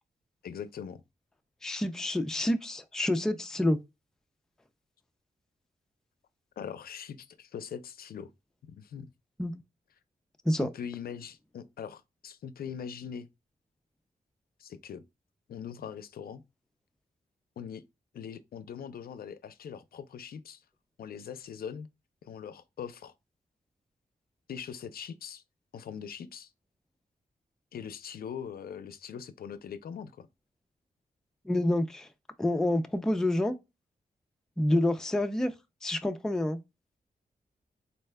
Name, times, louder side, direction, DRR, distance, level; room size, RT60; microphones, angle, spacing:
voice 1, 0.4-1.0 6.6-8.3 8.6-9.1 10.6-13.3 14.6-15.0 15.5-16.4 17.6-17.8 18.1-20.6 21.0-21.9 22.2-23.1 24.5-25.4 25.7-26.5 27.7-30.3, left 7 dB, 75° left, 0.4 m, -41 dB
voice 2, 1.6-3.8 9.4-9.5 10.5-10.7 31.4-32.1 32.4-33.6 34.6-35.5 35.8-36.6, left 1 dB, 5° left, 0.3 m, -28 dB
4.1 x 2.2 x 3.2 m
wide cardioid pair, 175°, 16 cm